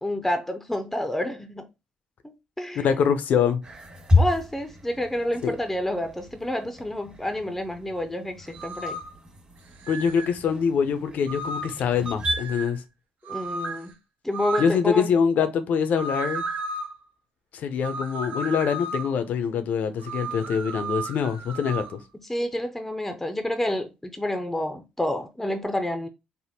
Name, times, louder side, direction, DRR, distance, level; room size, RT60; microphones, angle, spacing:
voice 1, 0.0-1.7 2.2-2.9 4.2-9.0 13.3-13.9 14.2-15.1 22.3-26.1, left 1 dB, 5° left, 0.5 m, -29 dB
voice 2, 2.7-3.6 5.4-5.5 9.9-12.8 14.6-16.4 17.5-22.0, left 7 dB, 65° left, 0.5 m, -24 dB
sound 1, 3.6-12.4, left 2 dB, 35° right, 1.4 m, -30 dB
sound 2, 8.5-9.1 9.8-10.3 11.3-11.8 12.2-12.7 13.3-13.8 14.3-14.8 16.0-16.9 17.8-19.2 20.0-21.9, right 2 dB, 65° right, 0.6 m, -33 dB
3.4 x 2.0 x 2.7 m
supercardioid pair, 60°, 3 cm